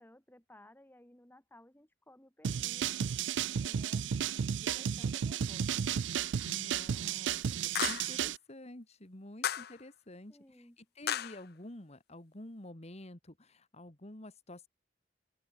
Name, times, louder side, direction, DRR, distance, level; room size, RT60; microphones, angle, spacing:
voice 1, 0.0-3.0 3.6-4.1 4.6-5.8 7.5-7.8 10.3-10.8, left 1 dB, 10° left, 2.0 m, -58 dB
sound 1, 2.4-8.4, right 8 dB, 90° right, 0.4 m, -33 dB
sound 2, 6.4-6.5 7.7-8.2 9.4-9.8 11.1-11.4, left 9 dB, 60° left, 0.6 m, -34 dB
voice 2, 6.4-7.4 7.8-14.7, left 1 dB, 35° left, 2.3 m, -49 dB
open air
head